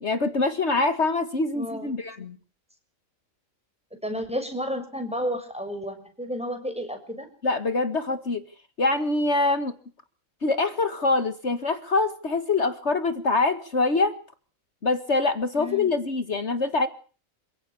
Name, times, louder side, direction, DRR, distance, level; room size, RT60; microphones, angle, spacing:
voice 1, 0.0-2.4 7.4-8.4 8.8-9.7 10.4-14.2 14.8-16.9, left 3 dB, 55° left, 10 dB, 2.0 m, -24 dB
voice 2, 1.5-1.9 4.0-7.3 15.6-15.9, equal, 5° right, 6 dB, 6.7 m, -31 dB
27.5 x 16.5 x 8.5 m, 0.43 s
omnidirectional pair, 1.4 m